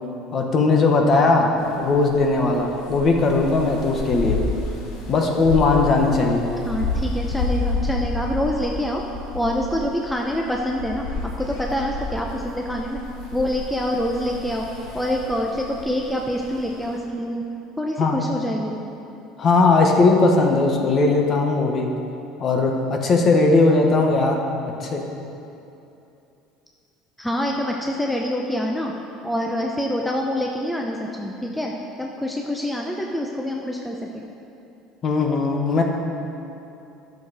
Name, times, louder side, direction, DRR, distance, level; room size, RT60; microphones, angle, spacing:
voice 1, 0.3-4.4 5.1-6.5 18.0-18.2 19.4-21.9 22.4-24.4 24.8-25.1 35.0-35.8, left 3 dB, 35° left, 2 dB, 1.2 m, -18 dB
sound 1, 1.6-17.0, left 3 dB, 75° left, 1.5 m, -31 dB
voice 2, 6.6-9.0 9.3-13.0 13.3-14.7 14.9-17.4 17.8-18.8 27.2-28.9 29.2-34.3, equal, 5° left, 0 dB, 0.7 m, -26 dB
10.5 x 6.6 x 5.0 m, 2.8 s
cardioid pair, 125°, 0 cm